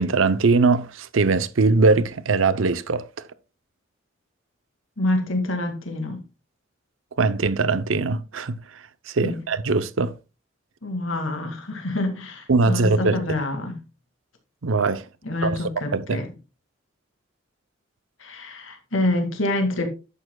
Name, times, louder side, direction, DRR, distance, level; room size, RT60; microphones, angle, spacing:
voice 1, 0.0-3.1 7.2-10.1 12.5-13.2 14.6-15.0 15.4-16.2, right 3 dB, 90° right, 0.7 m, -21 dB
voice 2, 5.0-6.2 9.2-9.4 10.8-13.8 15.2-16.3 18.2-19.9, left 1 dB, 90° left, 2.1 m, -26 dB
11.0 x 8.7 x 2.3 m
head